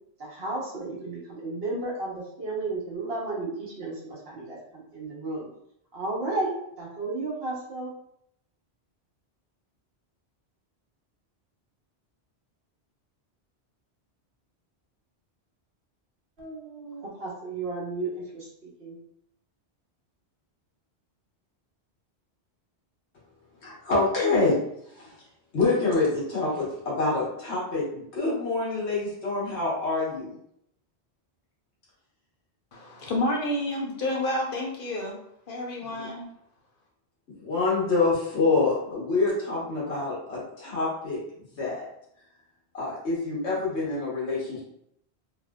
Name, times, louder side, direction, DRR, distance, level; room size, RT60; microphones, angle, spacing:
voice 1, 0.2-5.5 5.9-6.5 6.8-7.9 16.4-18.9, right 2 dB, 65° right, -5 dB, 1.2 m, -33 dB
voice 2, 23.6-24.6 24.9-25.1 25.5-30.3 35.8-36.1 37.3-41.2 41.6-41.9 42.7-44.6, left 3 dB, 85° left, -6 dB, 1.5 m, -26 dB
voice 3, 32.7-35.2 35.5-36.3, left 1 dB, 60° left, -1 dB, 0.7 m, -29 dB
3.2 x 2.6 x 2.3 m, 0.73 s
omnidirectional pair, 1.1 m